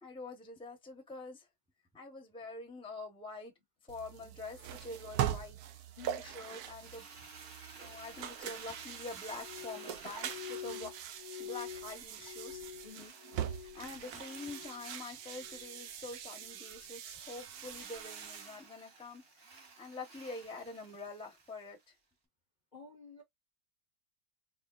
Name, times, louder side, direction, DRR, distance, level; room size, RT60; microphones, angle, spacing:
voice 1, 0.0-1.5 1.9-3.5 3.9-5.6 6.1-7.1 7.8-10.9 11.4-12.7 13.0-13.1 13.5-19.2 19.8-21.8, left 3 dB, 5° left, 0.8 m, -46 dB
sound 1, 3.9-18.6, right 10 dB, 80° right, 1.1 m, -42 dB
voice 2, 6.0-6.3 10.6-10.9 12.8-13.2 22.7-23.2, left 6 dB, 40° left, 0.8 m, -52 dB
Drill, 6.7-12.2 12.8-16.1 17.1-21.9, right 4 dB, 45° right, 1.1 m, -54 dB
Glass, 9.4-13.9 14.2-14.9 15.3-15.8 16.4-16.7, left 9 dB, 80° left, 1.1 m, -47 dB
4.2 x 3.1 x 2.4 m
omnidirectional pair, 1.6 m